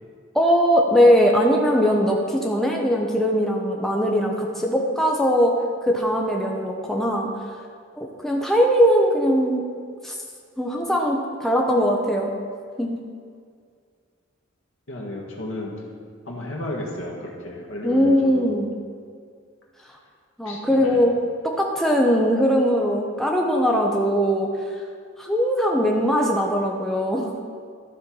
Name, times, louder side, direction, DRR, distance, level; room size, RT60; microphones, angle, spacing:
voice 1, 0.3-7.3 8.0-9.7 10.0-10.1 10.6-12.3 12.8-13.0 17.8-18.7 20.4-21.2 21.4-24.5 25.2-27.3, equal, ahead, -1 dB, 0.7 m, -20 dB
voice 2, 14.9-15.7 16.3-18.5 20.5-21.0, left 1 dB, 75° left, -2 dB, 1.7 m, -33 dB
12.5 x 4.3 x 6.2 m, 2.1 s
head